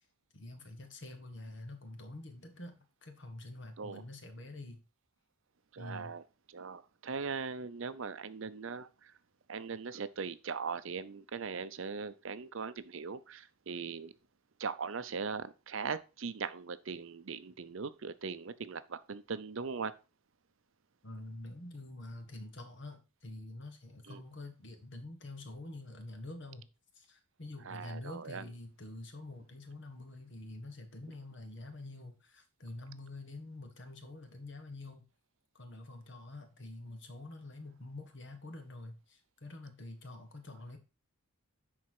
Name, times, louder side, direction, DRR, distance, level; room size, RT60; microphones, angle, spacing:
voice 1, 0.3-4.8 5.8-6.1 21.0-26.7 26.9-35.0 35.5-40.8, left 2 dB, 55° left, 1.7 m, -47 dB
voice 2, 5.7-6.2 6.5-9.1 9.5-14.1 14.6-19.9 24.1-24.2 27.6-28.5, right 5 dB, 65° right, 0.6 m, -40 dB
10.5 x 4.2 x 4.8 m
head